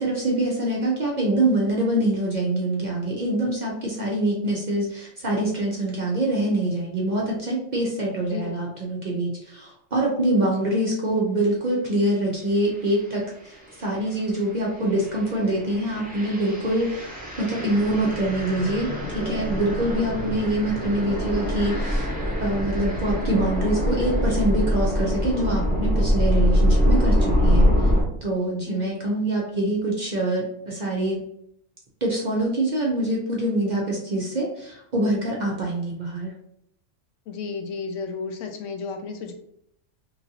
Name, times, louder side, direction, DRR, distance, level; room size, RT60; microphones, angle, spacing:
voice 1, 0.0-22.1 22.4-27.9 28.2-31.2 32.0-36.3, right 1 dB, 50° right, -3 dB, 0.5 m, -25 dB
voice 2, 8.2-8.6 10.6-10.8 28.7-29.1 37.3-39.3, left 5 dB, 80° left, 4 dB, 0.9 m, -33 dB
sound 1, 12.8-13.0 13.6-28.0, equal, 10° right, 0.6 m, -24 dB
2.9 x 2.6 x 2.7 m, 0.74 s
omnidirectional pair, 1.3 m